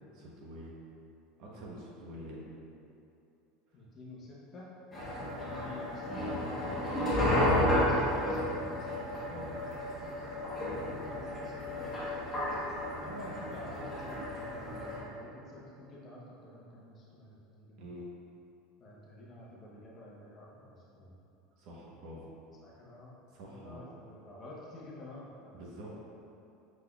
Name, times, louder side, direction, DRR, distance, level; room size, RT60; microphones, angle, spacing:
voice 1, 0.1-0.7 1.4-2.5 5.2-5.3 9.2-9.5 17.8-18.1 21.6-22.3 23.3-23.8 25.5-25.9, equal, 55° right, -4 dB, 0.9 m, -46 dB
voice 2, 3.7-6.4 7.2-8.9 10.7-12.0 13.0-17.8 18.8-21.1 22.6-23.1 23.5-25.6, left 1 dB, 30° left, -5 dB, 0.7 m, -50 dB
sound 1, 4.9-15.0, left 1 dB, 15° left, 1.2 m, -32 dB
5.1 x 3.9 x 2.3 m, 2.8 s
supercardioid pair, 155°, 0 cm